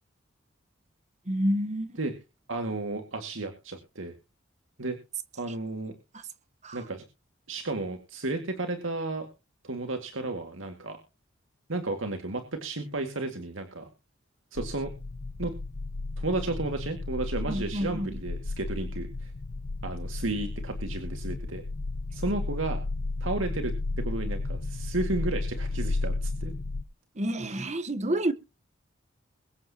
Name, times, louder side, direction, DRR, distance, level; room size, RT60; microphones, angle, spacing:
voice 1, 1.3-1.9 6.6-6.8 17.5-18.1 27.2-28.3, right 1 dB, 35° right, 1.1 m, -28 dB
voice 2, 2.5-4.1 4.8-5.0 5.4-5.9 6.7-7.0 7.5-9.3 9.6-11.0 11.7-13.9 14.5-14.9 15.4-15.5 16.2-19.3 19.8-21.6 22.1-22.8 23.2-26.5 27.5-27.7, right 2 dB, 80° right, 2.1 m, -33 dB
sound 1, 14.6-26.8, left 2 dB, 85° left, 0.8 m, -33 dB
22.5 x 8.5 x 2.9 m
head